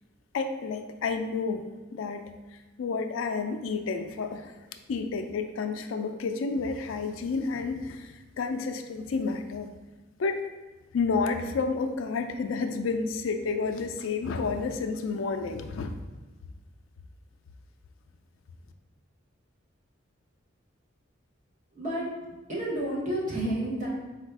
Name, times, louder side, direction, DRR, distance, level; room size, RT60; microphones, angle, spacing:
voice 1, 0.3-1.6 1.9-2.2 2.8-4.5 4.9-9.7 10.2-10.4 10.9-16.0, left 4 dB, 85° left, 6 dB, 0.4 m, -30 dB
voice 2, 21.7-22.1 22.5-23.9, right 1 dB, 40° right, -6 dB, 1.2 m, -30 dB
4.1 x 2.4 x 4.6 m, 1.2 s
head